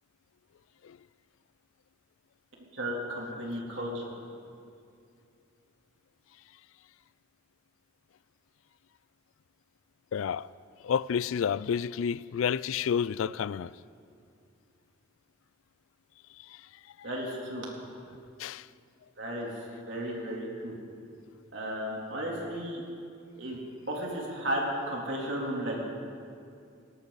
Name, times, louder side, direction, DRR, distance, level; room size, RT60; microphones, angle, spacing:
voice 1, 2.7-4.1 17.0-17.7 19.2-19.5 19.9-20.7 21.5-22.8 23.4-23.6 23.9-25.8, equal, 65° right, 3.4 m, -34 dB
voice 2, 10.1-10.5 10.8-13.7 18.4-18.7, left 7 dB, 85° left, 0.3 m, -30 dB
19.0 x 18.0 x 4.1 m
head